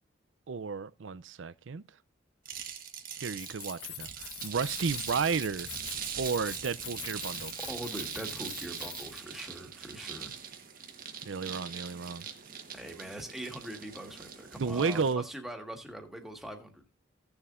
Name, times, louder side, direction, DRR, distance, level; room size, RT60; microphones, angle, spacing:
voice 1, 0.5-1.8 3.2-5.7 6.2-7.5 11.3-12.2 14.6-15.2, right 5 dB, 75° right, 0.5 m, -32 dB
sound 1, 2.5-15.1, right 8 dB, 45° right, 1.3 m, -41 dB
Keys jangling, 3.4-9.4, left 10 dB, 75° left, 1.4 m, -45 dB
voice 2, 7.5-10.3 12.7-16.8, right 1 dB, ahead, 1.6 m, -42 dB
16.5 x 7.0 x 2.5 m
head